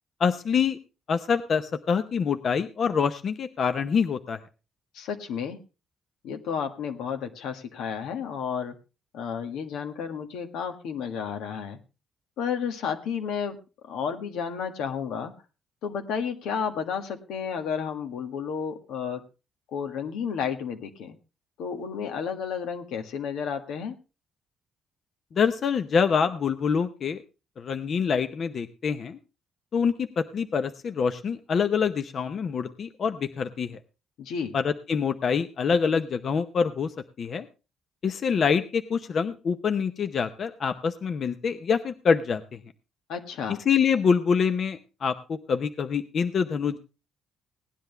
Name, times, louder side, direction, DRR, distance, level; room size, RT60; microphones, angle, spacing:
voice 1, 0.2-0.8 1.1-4.4 25.3-27.2 27.6-29.2 29.7-33.8 34.5-36.9 37.2-37.5 38.0-42.6 43.7-46.8, left 6 dB, 45° left, 9 dB, 0.8 m, -25 dB
voice 2, 4.9-5.6 6.2-8.7 9.1-11.8 12.4-13.6 13.9-15.3 15.8-19.2 19.7-21.2 21.6-23.9 34.2-34.5 43.1-43.6, left 7 dB, 90° left, 6 dB, 1.7 m, -32 dB
17.5 x 10.5 x 3.4 m, 0.30 s
cardioid pair, 125°, 0 cm